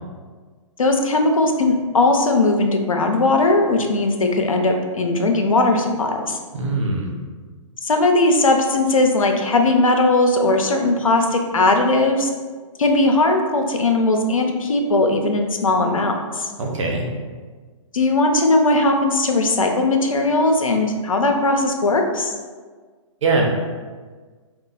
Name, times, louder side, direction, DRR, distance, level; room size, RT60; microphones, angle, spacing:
voice 1, 0.8-6.4 7.8-12.3 12.8-16.5 17.9-22.3, left 2 dB, 90° left, 4 dB, 0.7 m, -18 dB
voice 2, 6.5-7.1 16.6-17.1 23.2-23.5, right 3 dB, 70° right, 0 dB, 1.0 m, -21 dB
4.6 x 2.4 x 3.9 m, 1.5 s
hypercardioid pair, 130°, 17 cm